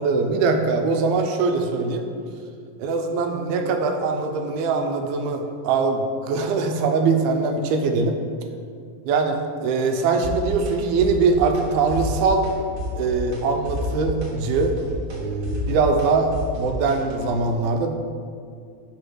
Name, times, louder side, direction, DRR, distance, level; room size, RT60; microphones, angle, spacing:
voice 1, 0.0-2.1 2.8-8.2 9.1-12.4 13.0-14.7 15.1-16.3 16.6-17.9, right 4 dB, 85° right, 5 dB, 2.5 m, -22 dB
sound 1, 10.2-10.7 11.0-11.6 11.9-12.5 12.8-13.4 13.7-17.3, equal, 55° right, 2.1 m, -30 dB
5.4 x 5.2 x 6.1 m, 2.2 s
omnidirectional pair, 4.3 m